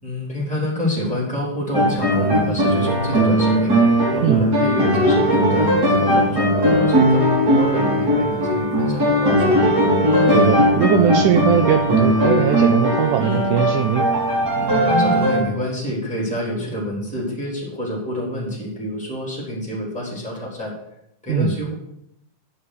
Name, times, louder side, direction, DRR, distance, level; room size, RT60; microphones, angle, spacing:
voice 1, 0.0-3.8 4.1-7.3 7.5-9.6 14.5-20.7 21.2-21.7, left 1 dB, ahead, -4 dB, 3.1 m, -27 dB
sound 1, 1.7-15.4, equal, 30° right, 3.0 m, -18 dB
voice 2, 10.3-14.1 21.3-21.6, right 10 dB, 85° right, 7 dB, 1.8 m, -20 dB
9.5 x 6.0 x 6.2 m, 0.77 s
omnidirectional pair, 4.1 m